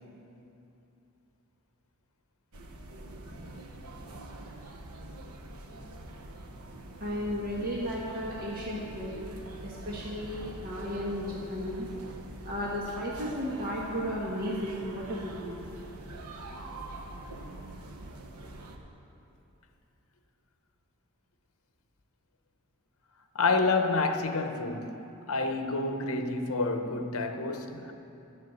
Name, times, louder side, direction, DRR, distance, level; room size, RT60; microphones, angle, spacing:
sound 1, 2.5-18.8, right 1 dB, 85° right, 1.1 m, -44 dB
voice 1, 7.0-9.2 9.6-11.9 12.4-15.6, equal, 40° right, 1.5 m, -34 dB
voice 2, 23.3-25.0 25.3-27.9, left 3 dB, 70° left, 0.9 m, -28 dB
11.0 x 7.5 x 9.3 m
head